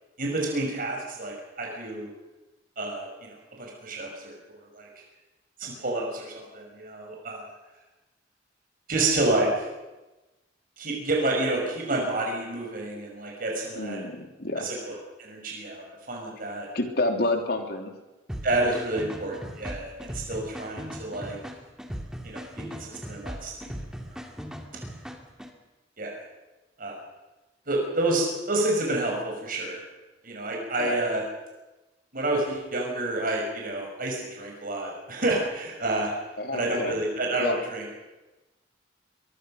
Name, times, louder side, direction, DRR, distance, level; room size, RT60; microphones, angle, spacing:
voice 1, 0.2-2.1 2.8-4.9 5.6-7.4 8.9-9.7 10.8-14.0 14.6-14.8 15.2-16.7 18.4-21.4 22.2-23.7 26.0-26.2 26.8-27.0 27.7-29.8 30.2-31.2 32.1-36.1 36.5-37.8, right 2 dB, 50° right, 0 dB, 5.7 m, -29 dB
voice 2, 13.8-14.7 16.7-17.9 30.8-31.0 36.4-36.9 37.4-37.6, left 2 dB, 60° left, 5 dB, 3.4 m, -28 dB
sound 1, 18.3-25.5, equal, 5° right, 2.4 m, -39 dB
23.5 x 23.0 x 6.5 m, 1.1 s
head